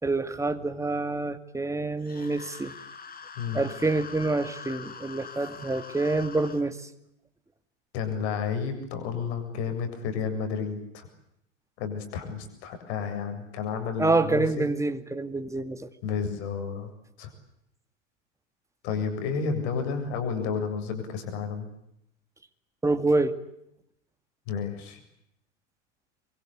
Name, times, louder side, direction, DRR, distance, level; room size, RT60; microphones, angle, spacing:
voice 1, 0.0-2.7 3.5-6.8 14.0-15.9 22.8-23.4, right 2 dB, 10° right, 9 dB, 2.4 m, -27 dB
sound 1, 2.0-6.6, left 5 dB, 25° left, 4.5 m, -43 dB
voice 2, 7.9-11.1 11.8-14.7 16.0-16.9 17.2-17.3 18.8-21.7 24.5-25.0, left 6 dB, 60° left, 6 dB, 7.5 m, -31 dB
27.5 x 24.0 x 8.2 m, 0.79 s
hypercardioid pair, 85°, 38 cm